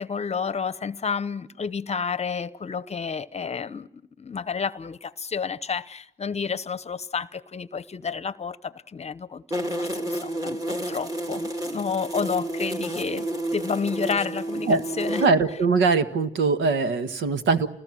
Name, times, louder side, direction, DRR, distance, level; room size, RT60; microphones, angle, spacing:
voice 1, 0.0-15.2, left 6 dB, 35° left, 0.9 m, -30 dB
sound 1, 9.5-15.3, right 1 dB, 20° right, 2.2 m, -30 dB
voice 2, 15.2-17.7, right 4 dB, 75° right, 1.7 m, -21 dB
29.0 x 20.0 x 7.8 m
cardioid pair, 90°, 20 cm